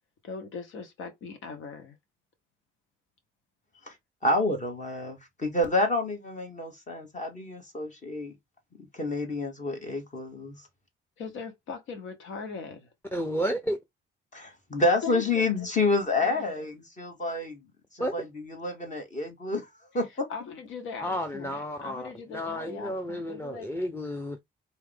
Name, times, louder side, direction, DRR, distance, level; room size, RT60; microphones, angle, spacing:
voice 1, 0.2-2.0 11.2-12.9 15.0-15.7 16.1-16.6 20.3-23.7, left 5 dB, 80° left, 1.3 m, -40 dB
voice 2, 4.2-8.3 8.8-10.6 14.3-17.6 17.9-19.7 19.9-20.3, left 2 dB, 40° left, 2.5 m, -29 dB
voice 3, 13.1-13.8 18.0-18.1 21.0-24.4, equal, 10° left, 0.8 m, -32 dB
4.6 x 3.0 x 3.7 m
cardioid pair, 90°, 20 cm